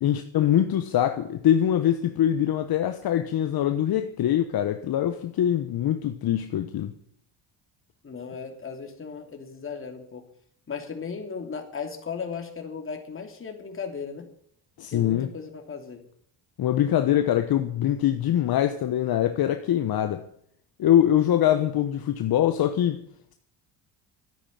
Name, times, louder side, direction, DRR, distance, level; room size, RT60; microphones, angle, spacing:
voice 1, 0.0-6.9 14.8-15.3 16.6-20.3 20.8-23.0, left 11 dB, 55° left, 1.2 m, -23 dB
voice 2, 8.0-10.2 10.7-14.2 14.9-16.0, left 5 dB, 30° left, 3.2 m, -36 dB
13.0 x 9.8 x 8.9 m
cardioid pair, 125°, 43 cm